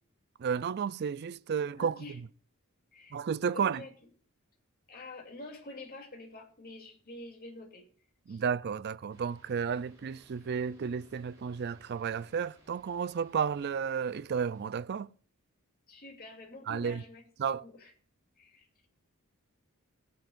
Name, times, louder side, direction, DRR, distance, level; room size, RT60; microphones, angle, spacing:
voice 1, 0.4-1.9 3.1-3.8 8.3-15.1 16.7-17.0 17.4-17.7, right 6 dB, 50° right, 0.4 m, -32 dB
voice 2, 1.8-2.2 2.9-3.2 3.5-3.9 4.9-7.9 8.3-8.4 15.9-17.2 17.6-17.9 18.4-18.7, left 2 dB, 45° left, 2.8 m, -47 dB
sound 1, 9.1-14.6, equal, 15° right, 5.6 m, -63 dB
17.5 x 9.3 x 2.5 m
head